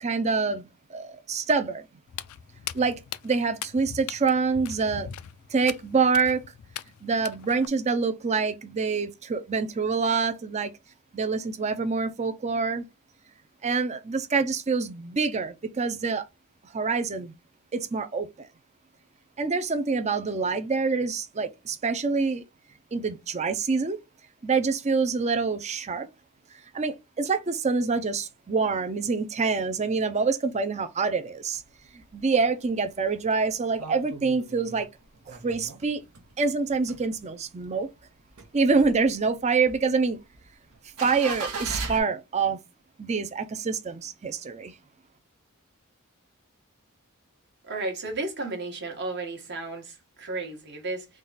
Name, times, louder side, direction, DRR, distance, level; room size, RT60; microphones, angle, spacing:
voice 1, 0.0-1.9 2.7-2.9 3.2-5.1 5.5-6.4 7.0-10.7 11.1-12.9 13.6-16.2 16.7-17.3 17.7-18.5 19.4-22.4 22.9-24.0 24.4-26.1 26.7-31.6 31.9-34.9 35.3-36.0 36.4-37.9 38.5-40.2 41.0-42.6 43.0-44.7, right 4 dB, 30° right, 0.5 m, -26 dB
Walk footsteps, 2.1-7.7, left 10 dB, 75° left, 0.4 m, -40 dB
sound 1, 31.5-32.2 32.6-32.7 32.9-36.3 36.7-37.7 38.1-42.0, right 3 dB, 75° right, 1.1 m, -38 dB
voice 2, 47.7-51.1, right 2 dB, 50° right, 1.2 m, -33 dB
3.7 x 2.3 x 3.9 m
head